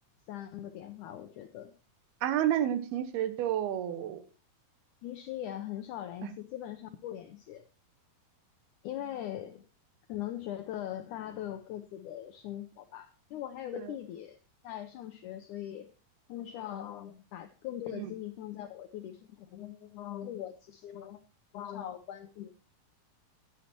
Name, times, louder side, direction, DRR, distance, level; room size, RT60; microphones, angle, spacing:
voice 1, 0.3-1.7 5.0-7.6 8.8-9.7 10.1-14.4 14.6-15.9 16.3-21.2 21.5-22.5, left 11 dB, 85° left, 8 dB, 1.7 m, -41 dB
voice 2, 2.2-4.2 6.2-6.3 13.7-13.9 17.9-18.1, right 11 dB, 90° right, 12 dB, 3.0 m, -30 dB
14.5 x 9.8 x 2.8 m, 0.33 s
omnidirectional pair, 4.4 m